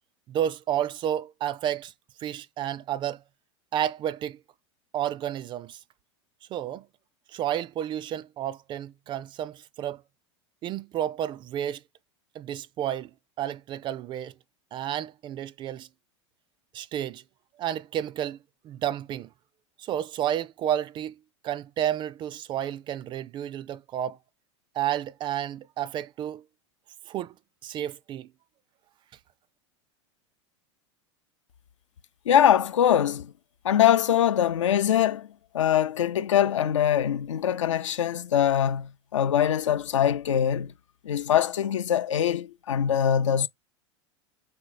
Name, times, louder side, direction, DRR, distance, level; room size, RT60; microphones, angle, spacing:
voice 1, 0.3-1.9 2.2-3.2 3.7-4.4 4.9-5.8 6.5-6.9 7.3-10.0 10.6-11.8 12.3-13.1 13.4-14.3 14.7-15.9 16.7-17.2 17.6-18.4 18.6-19.3 19.8-24.2 24.7-26.4 27.1-27.3 27.6-28.3, right 11 dB, 30° right, 0.3 m, -31 dB
voice 2, 32.3-33.3 33.6-35.3 35.5-40.7 41.0-43.5, left 10 dB, 85° left, 0.5 m, -23 dB
4.3 x 3.8 x 3.2 m
hypercardioid pair, 100°, 15 cm